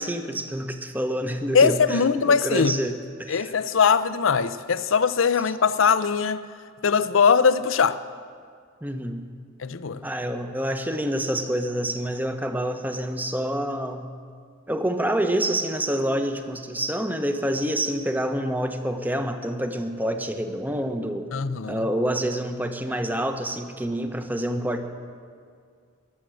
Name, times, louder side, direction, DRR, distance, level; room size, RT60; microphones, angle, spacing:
voice 1, 0.0-3.5 8.8-9.3 10.0-14.1 14.7-21.3 21.7-24.8, right 1 dB, 10° right, 6 dB, 0.9 m, -27 dB
voice 2, 1.5-2.9 3.3-6.5 6.8-8.0 9.6-10.1 21.3-21.8, left 6 dB, 75° left, 14 dB, 0.6 m, -21 dB
21.5 x 7.8 x 7.7 m, 2.1 s
head